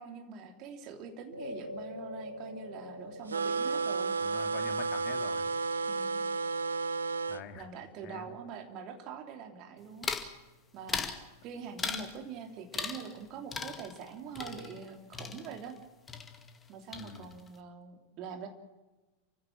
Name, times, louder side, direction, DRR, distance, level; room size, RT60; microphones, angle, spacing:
voice 1, 0.0-4.1 5.9-6.2 7.5-10.1 10.7-11.1 11.4-15.8 16.7-18.5, right 6 dB, 40° right, 5 dB, 3.2 m, -44 dB
sound 1, 1.3-9.8, left 1 dB, 90° left, 1.7 m, -47 dB
sound 2, 3.3-7.4, right 4 dB, 70° right, 0.7 m, -32 dB
voice 2, 4.2-5.5 7.3-7.7 8.0-8.3 16.9-17.3, left 7 dB, 40° left, 6 dB, 2.6 m, -45 dB
sound 3, 10.0-10.3 10.9-11.2 11.8-12.2 12.7-13.2 13.5-16.7 16.9-17.5, left 5 dB, 15° left, 2.0 m, -38 dB
28.5 x 16.0 x 7.5 m, 1.2 s
figure-of-eight pair, 90°, 0 cm